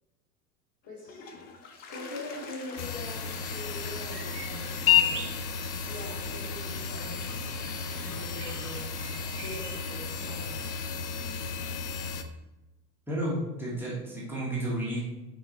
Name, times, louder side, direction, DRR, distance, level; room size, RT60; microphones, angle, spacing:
voice 1, 0.8-1.2 1.9-5.2 5.8-7.3 8.0-8.8 9.4-10.7, left 1 dB, 35° left, -2 dB, 1.7 m, -43 dB
Toilet flush, 0.8-11.2, left 4 dB, 20° left, 0.5 m, -47 dB
Bird vocalization bird call bird song, 2.7-10.8, right 5 dB, 70° right, 1.0 m, -47 dB
sound 1, 2.8-12.2, left 7 dB, 60° left, 0.7 m, -32 dB
voice 2, 13.1-15.0, right 1 dB, 5° right, -7 dB, 1.7 m, -32 dB
8.9 x 3.9 x 3.1 m, 1.1 s
figure-of-eight pair, 85°, 49 cm